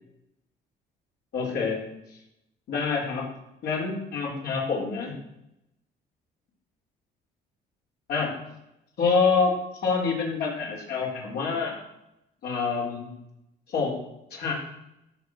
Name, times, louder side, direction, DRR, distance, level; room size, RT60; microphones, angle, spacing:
voice 1, 1.3-1.8 2.7-3.3 3.6-5.1 8.1-8.3 9.0-9.5 9.8-11.8 12.4-13.1 13.7-13.9 14.3-14.5, left 5 dB, 70° left, -2 dB, 4.3 m, -26 dB
13.5 x 6.2 x 6.3 m, 0.85 s
cardioid pair, 110°, 17 cm